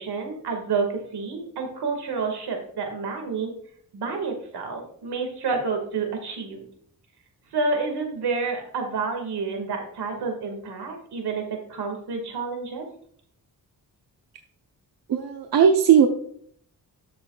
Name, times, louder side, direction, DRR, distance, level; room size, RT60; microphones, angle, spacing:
voice 1, 0.0-3.5 3.9-6.7 7.5-11.4 11.7-12.9, right 4 dB, 90° right, 4 dB, 2.1 m, -29 dB
voice 2, 15.1-16.1, right 8 dB, 70° right, 4 dB, 0.8 m, -17 dB
12.5 x 6.9 x 2.4 m, 0.62 s
wide cardioid pair, 120°, 38 cm